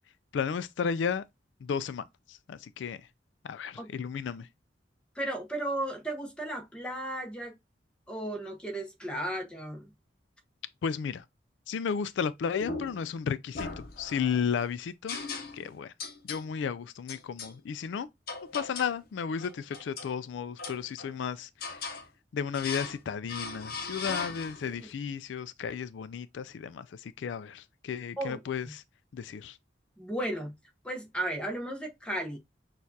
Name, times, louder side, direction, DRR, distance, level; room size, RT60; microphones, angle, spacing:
voice 1, 0.3-1.2 1.6-3.0 3.4-4.5 10.8-11.2 11.7-15.2 15.5-15.9 16.2-18.1 18.5-21.9 22.3-28.8 29.1-29.6, left 6 dB, 80° left, 0.3 m, -33 dB
voice 2, 5.1-7.6 8.1-9.9 24.0-24.2 24.6-24.8 28.2-28.4 30.0-30.5 30.8-32.4, right 1 dB, 5° left, 0.9 m, -35 dB
sound 1, 12.6-13.1 13.5-14.4 15.1-15.7 16.0-16.5 17.1-17.5 18.3-19.0 19.4-20.1 20.6-21.2 21.6-22.1 22.5-23.0 23.3-24.8, left 4 dB, 55° left, 0.8 m, -39 dB
6.3 x 2.4 x 2.7 m
head